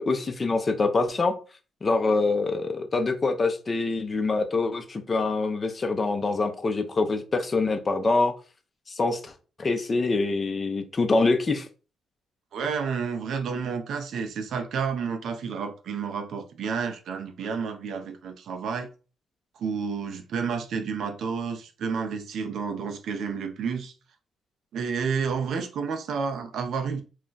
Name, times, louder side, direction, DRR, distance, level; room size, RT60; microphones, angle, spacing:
voice 1, 0.0-1.3 1.8-8.3 8.9-9.3 9.6-11.7, left 3 dB, 40° left, 0.6 m, -25 dB
voice 2, 12.5-18.9 19.6-23.9 24.7-27.0, right 5 dB, 70° right, 0.5 m, -30 dB
2.4 x 2.1 x 3.8 m
supercardioid pair, 55°, 0 cm